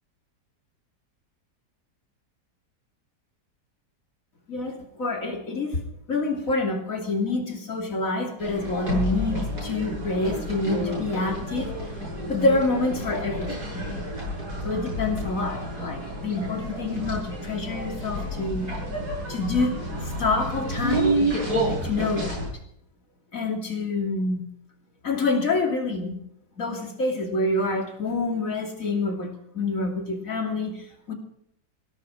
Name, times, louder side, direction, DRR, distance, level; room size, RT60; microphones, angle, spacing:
voice 1, 4.5-5.8 6.1-11.7 12.3-13.8 14.6-18.7 19.3-21.2 21.6-22.5 23.3-24.4 25.0-26.2 26.6-31.1, left 3 dB, 55° left, 4 dB, 3.3 m, -27 dB
sound 1, 8.4-22.5, right 1 dB, 70° right, 8.1 m, -30 dB
17.0 x 14.0 x 5.0 m, 0.70 s
omnidirectional pair, 1.7 m